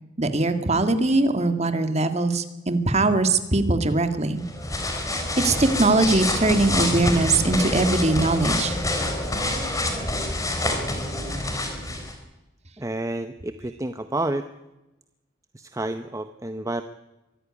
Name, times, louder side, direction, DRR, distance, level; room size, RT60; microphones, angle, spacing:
voice 1, 0.2-4.4 5.4-8.8, right 2 dB, 35° right, 8 dB, 1.9 m, -21 dB
sound 1, 4.4-12.1, left 1 dB, 20° left, 3.9 m, -27 dB
voice 2, 12.8-14.5 15.5-16.8, right 2 dB, 15° right, 9 dB, 0.8 m, -29 dB
23.5 x 15.0 x 9.7 m, 0.99 s
head